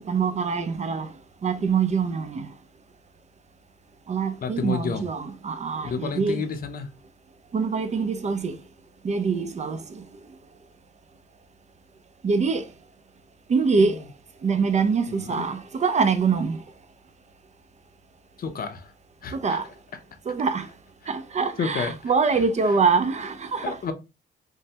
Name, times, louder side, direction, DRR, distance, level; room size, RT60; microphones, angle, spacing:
voice 1, 0.1-1.1 1.4-2.5 4.1-6.4 7.5-8.5 9.0-9.8 12.2-12.6 13.5-14.0 14.4-16.6 19.4-19.6 20.3-20.7 21.1-23.8, right 5 dB, 35° right, 0.4 m, -24 dB
voice 2, 4.4-5.0 5.8-6.9 13.8-14.0 15.1-15.4 18.4-18.9 19.2-19.6 21.6-22.0 23.6-23.9, left 6 dB, 45° left, 0.6 m, -30 dB
3.2 x 2.1 x 2.8 m
cardioid pair, 90°, 20 cm